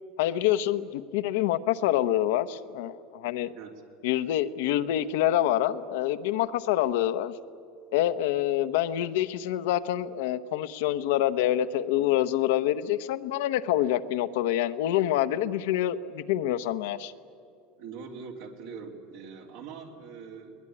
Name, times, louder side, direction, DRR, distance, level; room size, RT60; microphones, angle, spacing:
voice 1, 0.2-3.5 4.0-7.3 7.9-17.1, left 12 dB, 80° left, 11 dB, 0.9 m, -26 dB
voice 2, 17.8-20.6, right 5 dB, 75° right, 2 dB, 3.3 m, -42 dB
21.0 x 20.0 x 9.9 m, 2.4 s
supercardioid pair, 125°, 0 cm